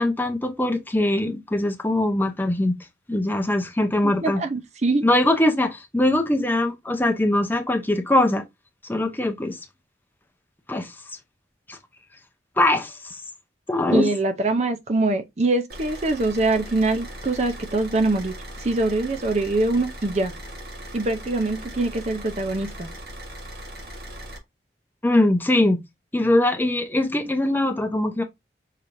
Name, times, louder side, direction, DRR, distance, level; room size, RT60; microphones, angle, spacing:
voice 1, 0.0-2.7 3.1-4.4 5.0-8.4 8.9-9.6 10.7-10.9 11.7-11.8 12.6-13.2 13.7-14.1 25.0-25.8 26.1-28.2, left 1 dB, 10° left, 0.6 m, -22 dB
voice 2, 4.0-5.0 13.9-18.3 18.6-20.3 20.9-22.9, right 2 dB, 40° right, 0.5 m, -23 dB
Car / Idling, 15.7-24.4, equal, 60° right, 1.3 m, -39 dB
5.6 x 3.3 x 2.6 m
head